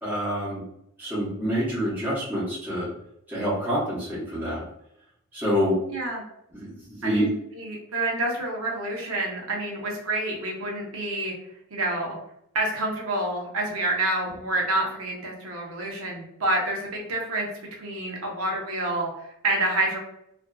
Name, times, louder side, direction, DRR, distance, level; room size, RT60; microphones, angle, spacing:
voice 1, 0.0-0.6 1.0-2.9 3.3-4.6 5.3-5.8 6.5-7.3, equal, 10° right, -10 dB, 0.9 m, -27 dB
voice 2, 5.9-6.2 7.0-11.3 11.7-12.2 12.5-17.5 17.8-20.0, right 2 dB, 80° right, -1 dB, 0.8 m, -28 dB
2.5 x 2.4 x 2.2 m, 0.76 s
head